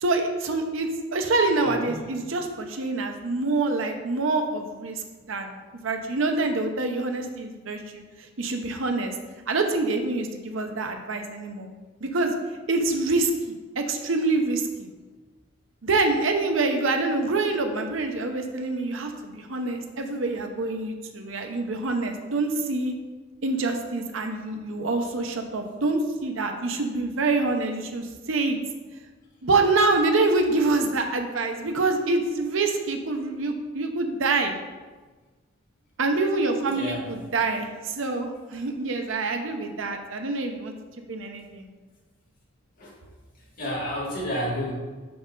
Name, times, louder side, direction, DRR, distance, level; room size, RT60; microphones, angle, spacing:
voice 1, 0.0-8.0 8.4-9.1 9.5-11.7 12.0-12.3 12.7-14.9 15.8-22.9 23.4-28.6 29.4-34.5 36.0-40.7 41.1-41.7, right 3 dB, 75° right, 4 dB, 0.8 m, -26 dB
voice 2, 36.7-37.0 42.8-42.9 43.6-44.7, equal, 45° left, -4 dB, 1.9 m, -30 dB
5.8 x 5.3 x 3.8 m, 1.3 s
head